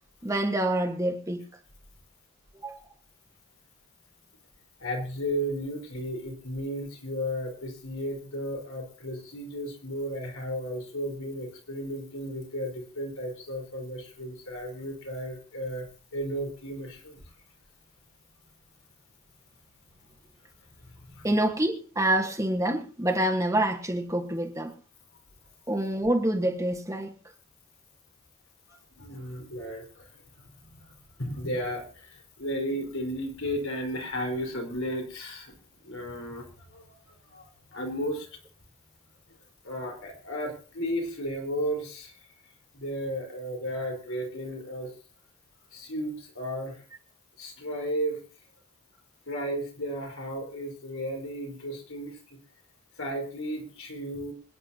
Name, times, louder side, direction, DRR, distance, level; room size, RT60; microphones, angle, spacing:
voice 1, 0.2-1.4 2.6-2.9 21.2-24.7 25.7-27.1, right 1 dB, 15° right, 1.4 m, -27 dB
voice 2, 4.8-17.2 21.1-21.3 28.9-30.2 30.8-30.9 31.2-35.5 35.8-36.8 37.3-38.3 39.6-42.1 42.7-45.0 45.7-46.8 47.4-48.2 49.3-52.2 53.0-54.3, equal, 75° left, 4.5 m, -34 dB
26.5 x 9.8 x 2.9 m
head